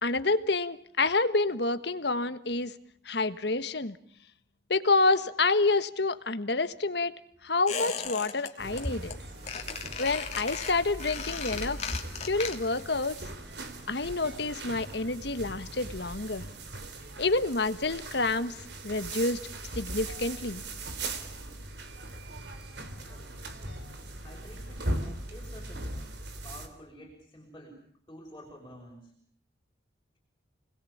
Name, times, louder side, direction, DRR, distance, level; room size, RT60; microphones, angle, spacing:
voice 1, 0.0-2.7 3.0-4.0 4.7-9.2 10.0-11.8 12.2-13.2 13.9-16.4 17.2-18.6 18.8-19.4 19.8-20.6, left 3 dB, 60° left, 12 dB, 1.5 m, -28 dB
Squeak, 7.7-8.5 8.8-9.1 9.4-12.9 13.1-13.2, left 6 dB, 35° left, 3.1 m, -36 dB
sound 1, 8.6-26.7, right 2 dB, 60° right, 3.6 m, -40 dB
voice 2, 24.2-24.9 25.3-26.0 26.4-27.8 28.1-29.1, equal, 15° left, -2 dB, 6.2 m, -44 dB
29.5 x 21.0 x 8.7 m, 0.63 s
head